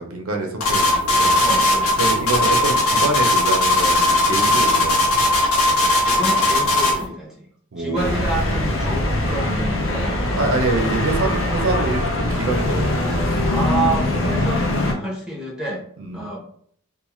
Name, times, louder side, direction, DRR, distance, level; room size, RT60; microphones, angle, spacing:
voice 1, 0.0-1.3 2.0-5.1 7.7-8.2 10.4-13.2 16.0-16.3, right 3 dB, 65° right, 3 dB, 0.5 m, -25 dB
sound 1, 0.6-7.0, left 2 dB, 80° left, 0.9 m, -18 dB
voice 2, 1.4-2.0 5.9-7.5 7.8-10.4 10.8-11.2 13.5-15.8 16.1-16.4, right 2 dB, 5° right, -3 dB, 0.6 m, -28 dB
sound 2, 7.9-14.9, left 1 dB, 60° left, 0.6 m, -22 dB
2.4 x 2.4 x 2.9 m, 0.63 s
head